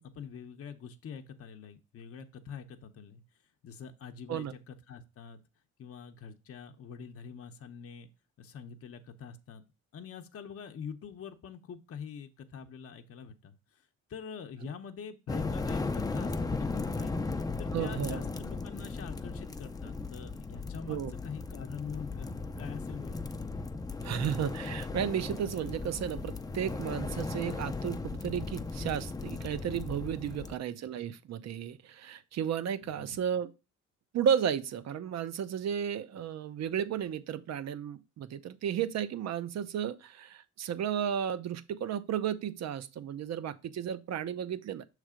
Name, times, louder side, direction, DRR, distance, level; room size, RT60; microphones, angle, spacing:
voice 1, 0.0-3.2 3.6-5.4 5.8-8.1 8.4-9.6 9.9-13.6 14.1-17.1 17.6-23.2 30.3-30.5 32.8-33.2, left 7 dB, 50° left, 0.8 m, -45 dB
sound 1, 15.3-30.5, left 3 dB, 10° left, 0.5 m, -36 dB
voice 2, 17.7-18.2 20.9-21.1 24.0-33.5 34.1-44.9, right 9 dB, 60° right, 0.7 m, -33 dB
6.4 x 3.3 x 4.9 m
cardioid pair, 90°, 30 cm